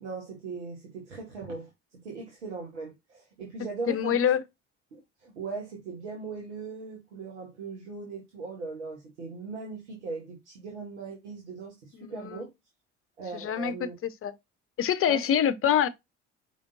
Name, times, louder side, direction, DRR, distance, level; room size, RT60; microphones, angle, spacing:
voice 1, 0.0-1.7 2.0-4.2 4.9-12.5 13.2-13.9 15.1-15.3, right 4 dB, 80° right, 1.3 m, -39 dB
voice 2, 3.9-4.4 12.0-12.4 13.3-13.7 14.0-14.3 14.8-15.9, left 9 dB, 40° left, 0.7 m, -25 dB
5.0 x 3.6 x 2.6 m
hypercardioid pair, 55°, 35 cm